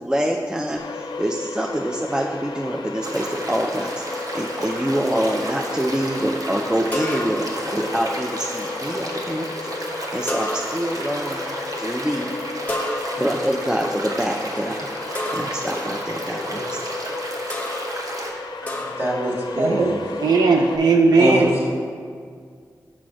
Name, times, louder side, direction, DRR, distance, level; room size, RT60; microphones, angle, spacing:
voice 1, 0.0-11.4 11.8-12.3 13.2-16.8, equal, 10° right, 1 dB, 0.4 m, -26 dB
sound 1, 0.8-20.8, left 3 dB, 85° left, 0.4 m, -34 dB
sound 2, 3.0-18.3, right 1 dB, 55° right, 0.9 m, -32 dB
sound 3, 6.9-7.7 10.3-11.0 12.7-13.5 15.2-15.7 17.5-18.0 18.7-19.2, left 1 dB, 20° left, 0.9 m, -29 dB
voice 2, 18.6-20.0 21.2-21.7, right 1 dB, 30° right, -3 dB, 1.8 m, -24 dB
voice 3, 19.6-21.5, right 3 dB, 70° right, 2 dB, 0.4 m, -18 dB
5.9 x 4.8 x 5.0 m, 2.1 s
cardioid pair, 45°, 7 cm